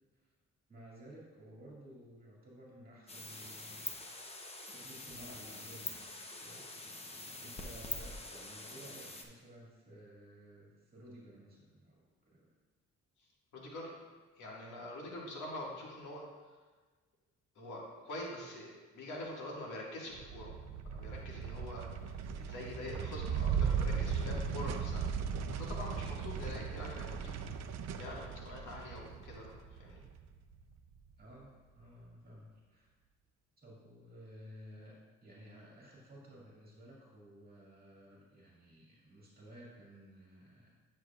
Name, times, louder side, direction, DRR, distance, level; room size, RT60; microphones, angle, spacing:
voice 1, 0.7-4.0 4.7-6.9 7.4-12.5 26.4-26.6 31.2-32.9 33.6-34.9 35.2-40.7, equal, 30° right, -5 dB, 2.2 m, -55 dB
sound 1, 3.1-9.2, left 2 dB, 20° left, 0.8 m, -45 dB
voice 2, 13.5-13.9 14.4-16.2 17.6-20.5 20.9-25.1 25.5-27.4 27.9-30.0, left 1 dB, 80° left, -3 dB, 1.9 m, -45 dB
sound 2, 20.1-30.7, right 6 dB, 60° right, 0.5 m, -37 dB
9.8 x 6.4 x 2.4 m, 1.3 s
cardioid pair, 90°, 30 cm